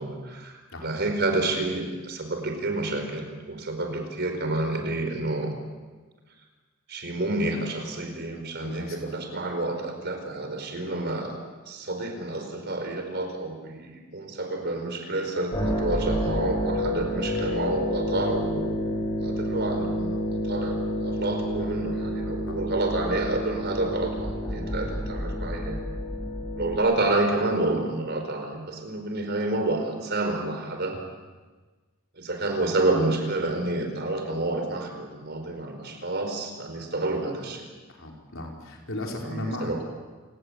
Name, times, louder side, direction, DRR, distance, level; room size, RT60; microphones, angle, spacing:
voice 1, 0.0-5.5 6.9-11.3 11.6-18.8 19.2-25.8 26.5-31.0 32.2-37.7 39.2-39.9, right 2 dB, 55° right, 5 dB, 4.8 m, -29 dB
voice 2, 8.6-9.1 22.5-22.6 37.9-39.7, left 1 dB, 70° left, 0 dB, 4.8 m, -35 dB
sound 1, 15.5-26.8, equal, 20° left, 6.4 m, -29 dB
28.0 x 18.5 x 8.2 m, 1.3 s
head